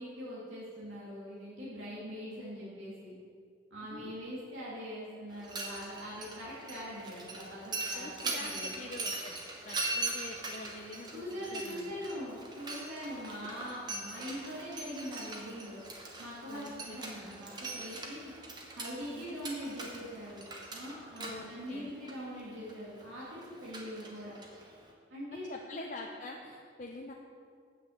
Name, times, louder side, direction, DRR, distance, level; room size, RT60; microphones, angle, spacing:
voice 1, 0.0-3.1 3.7-8.7 11.1-15.8 16.2-18.3 18.7-20.4 20.7-24.4 25.1-25.8, equal, 90° right, -7 dB, 2.1 m, -42 dB
voice 2, 3.8-4.3 7.9-9.4 9.6-11.9 16.5-17.3 19.1-19.2 21.2-21.9 25.5-27.1, left 2 dB, 40° left, 0 dB, 0.6 m, -45 dB
Mechanisms, 5.3-24.9, right 2 dB, 20° right, 1.0 m, -42 dB
7.9 x 6.3 x 7.0 m, 2.1 s
head